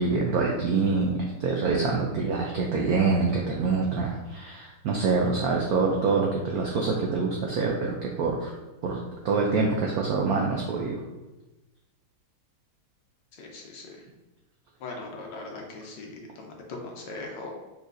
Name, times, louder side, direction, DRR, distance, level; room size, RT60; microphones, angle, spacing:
voice 1, 0.0-8.5 8.8-9.0 9.2-11.0, right 4 dB, 85° right, -1 dB, 0.8 m, -25 dB
voice 2, 13.3-14.1 14.8-17.5, left 2 dB, 70° left, 1 dB, 1.2 m, -40 dB
4.8 x 4.2 x 2.6 m, 1.1 s
omnidirectional pair, 2.3 m